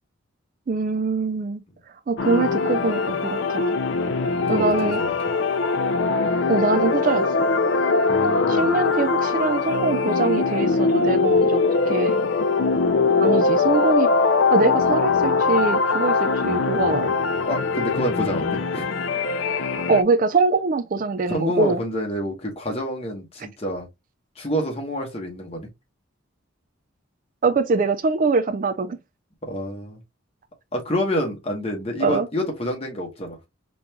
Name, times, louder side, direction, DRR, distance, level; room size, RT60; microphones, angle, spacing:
voice 1, 0.7-1.6 2.1-3.8 4.5-5.0 6.5-7.5 8.5-12.2 13.2-14.1 14.5-17.1 19.9-21.8 27.4-29.0 32.0-32.3, right 3 dB, 40° right, 0.3 m, -23 dB
sound 1, 2.2-20.0, left 4 dB, 65° left, 0.4 m, -21 dB
voice 2, 4.4-5.1 8.0-8.7 11.3-11.4 17.4-18.9 21.3-23.9 24.4-25.7 29.4-30.0 30.7-33.4, equal, 30° left, 1.0 m, -28 dB
5.0 x 3.1 x 2.2 m
head